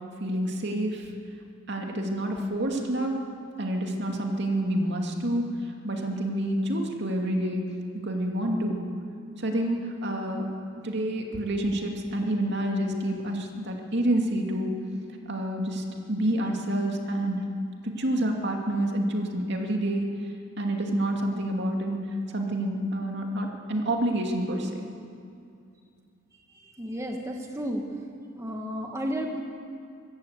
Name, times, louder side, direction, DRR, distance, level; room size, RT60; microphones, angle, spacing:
voice 1, 0.2-1.1 1.7-3.2 3.6-7.7 8.0-8.8 9.4-10.5 10.7-14.8 15.3-17.4 17.8-20.1 20.6-22.0 22.3-24.7, right 1 dB, 55° right, 1 dB, 2.5 m, -28 dB
voice 2, 26.5-27.8 28.3-29.4, equal, 15° right, 1 dB, 1.5 m, -32 dB
24.5 x 14.5 x 8.2 m, 2.4 s
head